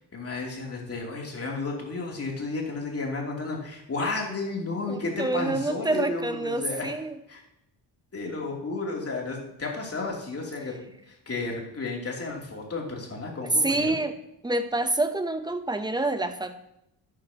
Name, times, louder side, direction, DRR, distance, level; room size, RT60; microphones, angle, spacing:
voice 1, 0.0-7.0 7.3-7.4 8.1-10.7 11.1-13.9, left 3 dB, 35° left, -1 dB, 3.1 m, -32 dB
voice 2, 4.9-7.2 13.6-14.1 14.4-16.6, right 2 dB, 10° right, 9 dB, 0.9 m, -27 dB
12.5 x 9.4 x 3.0 m, 0.82 s
cardioid pair, 105°, 41 cm